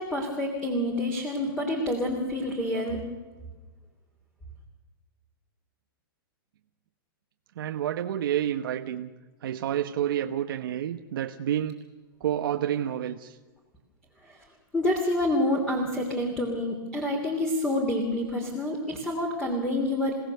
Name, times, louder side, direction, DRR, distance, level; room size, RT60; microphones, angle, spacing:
voice 1, 0.0-3.0 14.2-14.4 14.7-20.1, left 1 dB, 5° left, 2 dB, 3.0 m, -28 dB
voice 2, 7.6-9.1 9.4-11.8 12.2-13.3, right 10 dB, 70° right, 5 dB, 1.1 m, -29 dB
29.0 x 17.5 x 6.8 m, 1.3 s
hypercardioid pair, 155°, 12 cm